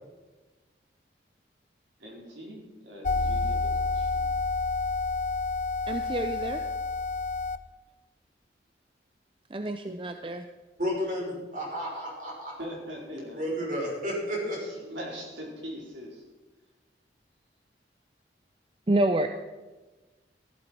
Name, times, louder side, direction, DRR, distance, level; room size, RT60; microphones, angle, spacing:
voice 1, 2.0-4.2 12.6-13.4 14.5-16.2, equal, 85° right, -2 dB, 4.7 m, -42 dB
sound 1, 3.0-7.6, left 3 dB, 40° left, 0.5 m, -29 dB
voice 2, 5.9-6.6 9.5-10.5 18.9-19.3, right 1 dB, 30° right, 7 dB, 0.5 m, -28 dB
voice 3, 10.8-12.5 13.4-14.6, equal, 45° right, -3 dB, 5.5 m, -32 dB
14.5 x 14.0 x 4.6 m, 1.2 s
head